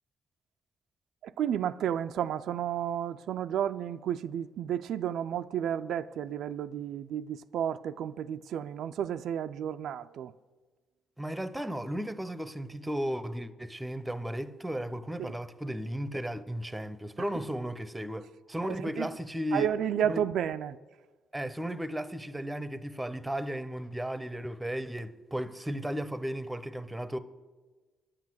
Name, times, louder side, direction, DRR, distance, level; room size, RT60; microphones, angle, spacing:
voice 1, 1.2-10.3 15.2-15.4 17.2-17.3 18.6-19.1 19.5-20.8, right 9 dB, 75° right, 0.3 m, -32 dB
voice 2, 11.2-19.7 20.0-20.2 21.3-27.2, equal, 10° right, 0.7 m, -35 dB
10.0 x 7.4 x 7.7 m
cardioid pair, 90°, 0 cm